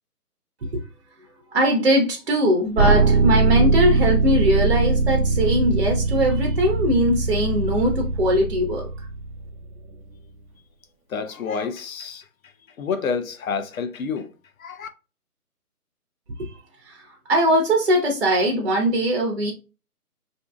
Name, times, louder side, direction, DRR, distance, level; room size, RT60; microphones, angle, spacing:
voice 1, 1.5-9.1 16.4-16.5 16.8-19.5, equal, 45° right, 0.6 m, -21 dB
sound 1, 2.8-9.7, right 3 dB, 90° right, 0.6 m, -21 dB
voice 2, 11.1-12.3 12.8-14.3 14.6-14.9, left 5 dB, 65° left, 0.6 m, -28 dB
2.6 x 2.6 x 2.2 m
figure-of-eight pair, 150°, 46 cm